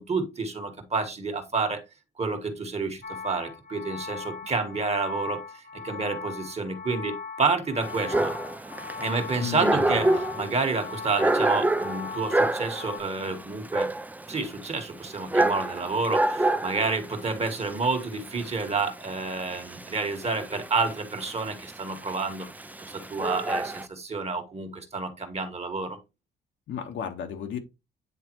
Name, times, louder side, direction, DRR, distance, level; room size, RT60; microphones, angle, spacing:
voice 1, 0.0-1.8 2.2-8.3 9.0-10.1 10.4-13.9 14.3-22.5 22.8-26.0, right 4 dB, 35° right, 1.4 m, -29 dB
sound 1, 3.0-13.0, left 5 dB, 45° left, 0.9 m, -39 dB
Dog, 7.8-23.9, right 2 dB, 10° right, 0.5 m, -28 dB
voice 2, 9.4-10.2 26.7-27.6, left 7 dB, 70° left, 1.2 m, -33 dB
9.3 x 3.5 x 3.0 m
cardioid pair, 90°, 20 cm